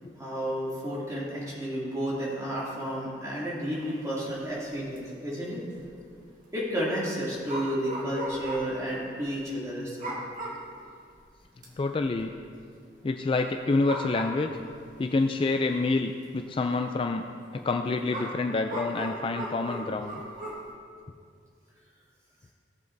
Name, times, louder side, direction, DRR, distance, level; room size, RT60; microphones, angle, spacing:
voice 1, 0.2-5.6 6.5-10.2, equal, 20° right, -7 dB, 2.6 m, -32 dB
sound 1, 3.8-4.0 4.4-4.5 4.7-5.0 5.7-6.0 7.5-8.8 9.2-9.3 10.0-10.7 11.1-11.2 11.6-12.2 13.5-13.6 13.8-14.8 15.6-15.7 18.1-20.7, right 1 dB, 45° right, 1.7 m, -37 dB
voice 2, 11.8-12.3 13.0-14.5 15.0-17.3 17.5-20.2, left 3 dB, 30° left, 5 dB, 0.3 m, -27 dB
17.0 x 7.1 x 2.7 m, 2.2 s
head